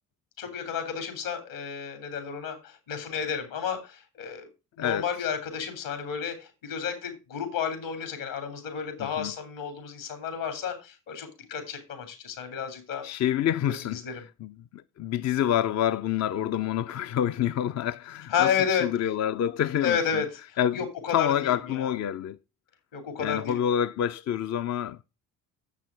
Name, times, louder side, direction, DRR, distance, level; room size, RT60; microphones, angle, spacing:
voice 1, 0.4-4.5 4.8-13.2 13.7-14.2 18.3-18.9 19.8-21.9 22.9-23.6, left 7 dB, 70° left, 3.2 m, -31 dB
voice 2, 9.0-9.3 13.0-14.5 15.0-18.5 18.8-20.2 20.6-20.8 21.1-22.4 23.2-25.0, left 10 dB, 40° left, 0.5 m, -27 dB
7.4 x 6.1 x 6.7 m
hypercardioid pair, 50°, 46 cm